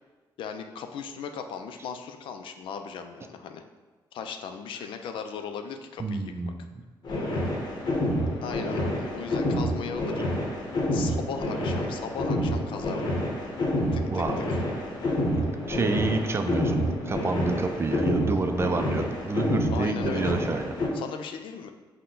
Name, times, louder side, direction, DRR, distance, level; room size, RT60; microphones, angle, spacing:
voice 1, 0.4-3.6 4.1-6.5 8.4-10.3 10.9-13.1 13.9-14.6 19.7-20.3 20.9-21.7, left 6 dB, 80° left, 6 dB, 0.4 m, -37 dB
voice 2, 6.0-6.6 14.1-14.4 15.4-20.7, right 3 dB, 30° right, 6 dB, 0.4 m, -28 dB
sound 1, 7.0-20.9, left 1 dB, 55° left, 1.0 m, -28 dB
5.6 x 2.2 x 3.8 m, 1.3 s
cardioid pair, 80°, 9 cm